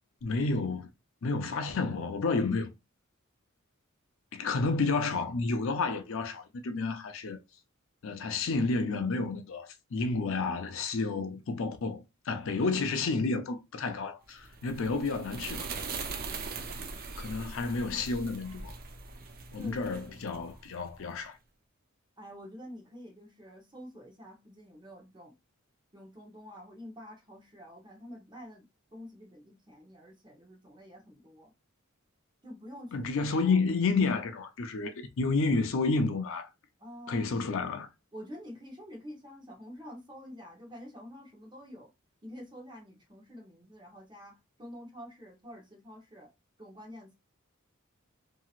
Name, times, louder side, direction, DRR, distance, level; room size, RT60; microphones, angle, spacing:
voice 1, 0.2-0.9 1.2-2.7 4.3-7.4 8.0-15.7 17.2-18.7 19.5-21.4 32.9-36.5 37.1-37.9, left 3 dB, 65° left, 0.5 m, -30 dB
sound 1, 14.4-21.0, right 4 dB, 45° right, 0.5 m, -41 dB
voice 2, 19.5-20.5 22.2-25.3 25.9-28.7 28.9-31.5 32.4-33.6 36.8-37.3 38.1-41.9 42.2-46.3 46.6-47.1, equal, 20° right, 0.9 m, -48 dB
2.8 x 2.8 x 2.4 m
head